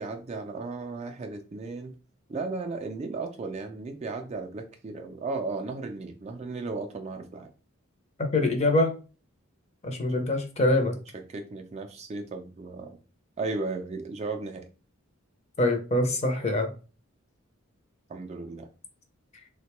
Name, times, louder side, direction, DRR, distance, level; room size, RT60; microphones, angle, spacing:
voice 1, 0.0-2.0 2.3-7.5 10.9-13.0 13.4-14.7 18.1-18.7, right 3 dB, 30° right, 0.3 m, -35 dB
voice 2, 8.3-8.9 9.8-11.0 15.6-16.7, left 1 dB, 30° left, 0.5 m, -24 dB
3.5 x 2.2 x 2.9 m
head